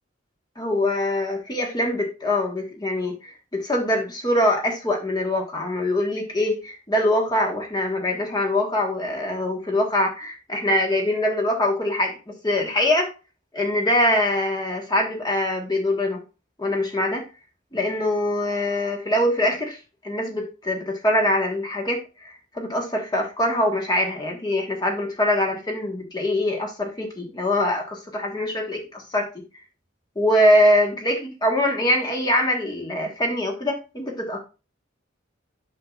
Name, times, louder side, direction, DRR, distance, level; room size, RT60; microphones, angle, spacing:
voice 1, 0.6-12.2 12.4-13.1 13.5-16.2 16.6-17.2 17.7-19.8 20.0-29.3 30.1-34.4, left 1 dB, 20° left, 1 dB, 1.5 m, -23 dB
8.4 x 6.4 x 2.5 m, 0.31 s
head